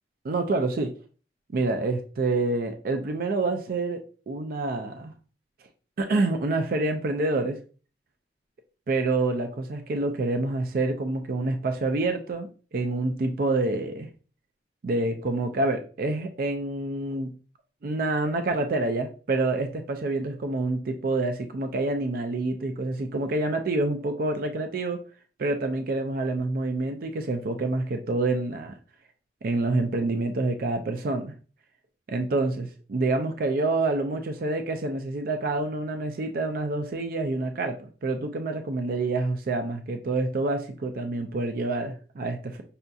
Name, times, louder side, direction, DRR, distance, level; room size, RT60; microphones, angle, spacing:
voice 1, 0.2-0.9 1.5-4.0 4.3-5.1 6.0-7.6 8.9-14.1 14.8-17.3 17.8-25.0 25.4-28.7 29.4-31.3 32.1-42.6, right 2 dB, 55° right, 6 dB, 0.4 m, -27 dB
5.5 x 2.6 x 2.3 m, 0.38 s
head